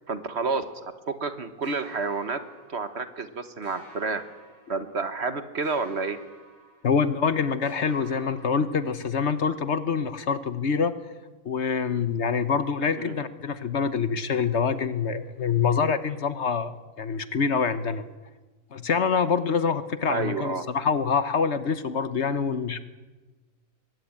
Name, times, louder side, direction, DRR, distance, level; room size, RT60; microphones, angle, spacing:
voice 1, 0.1-2.4 2.7-4.2 4.7-6.2 13.0-13.2 20.1-20.7, right 4 dB, 50° right, 10 dB, 1.6 m, -30 dB
sound 1, 1.6-3.3 3.6-5.3 5.6-7.3 7.6-9.3, right 1 dB, 85° right, 7.8 m, -52 dB
voice 2, 6.8-10.9 11.4-18.0 18.7-22.8, left 5 dB, 55° left, 13 dB, 1.2 m, -25 dB
23.0 x 19.0 x 8.8 m, 1.2 s
omnidirectional pair, 1.4 m